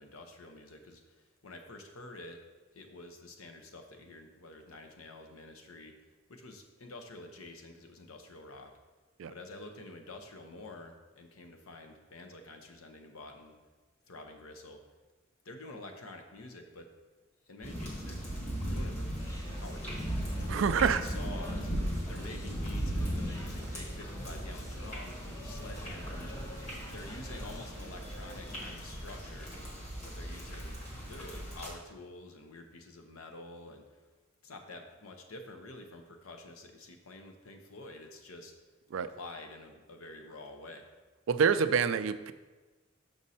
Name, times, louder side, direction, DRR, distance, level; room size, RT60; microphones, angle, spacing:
voice 1, 0.0-2.4 2.7-6.0 6.3-8.7 9.3-13.6 14.1-14.8 15.4-16.9 17.5-18.2 18.6-19.1 19.5-26.7 26.9-29.5 30.0-30.8 31.0-34.0 34.4-38.5 38.9-40.9, left 2 dB, 90° left, 5 dB, 0.8 m, -48 dB
sound 1, 17.6-31.7, equal, 35° left, 1.4 m, -37 dB
sound 2, 19.2-29.2, left 1 dB, 15° left, 0.6 m, -50 dB
voice 2, 20.5-21.0 38.9-39.1 41.3-42.3, right 6 dB, 65° right, 12 dB, 0.3 m, -27 dB
6.3 x 5.3 x 4.1 m, 1.2 s
head